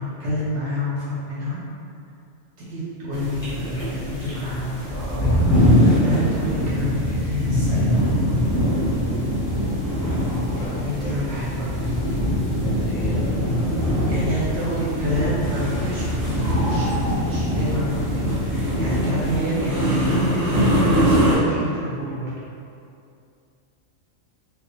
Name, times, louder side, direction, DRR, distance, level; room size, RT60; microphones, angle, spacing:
voice 1, 0.0-1.6 2.6-8.7 10.6-11.7 14.0-20.5 21.0-22.3, equal, 60° right, -9 dB, 0.9 m, -28 dB
sound 1, 3.1-21.4, equal, 5° left, 0.8 m, -22 dB
voice 2, 10.1-11.2 12.6-14.4, equal, 55° left, -6 dB, 0.6 m, -36 dB
2.4 x 2.4 x 2.5 m, 2.5 s
omnidirectional pair, 1.4 m